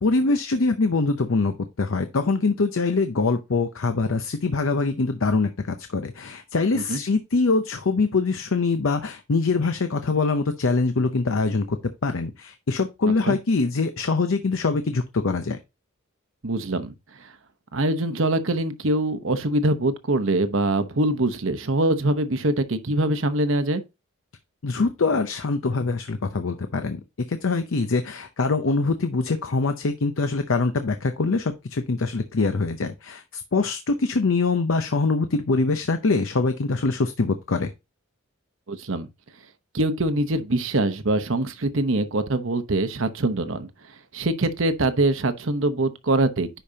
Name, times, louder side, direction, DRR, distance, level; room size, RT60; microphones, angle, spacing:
voice 1, 0.0-11.8 12.0-15.6 24.6-27.0 27.3-37.7, left 3 dB, 70° left, 0.6 m, -24 dB
voice 2, 16.4-16.9 17.7-23.8 38.7-39.1 39.7-43.7 44.1-46.6, right 2 dB, 65° right, 0.9 m, -23 dB
10.0 x 5.1 x 2.8 m
head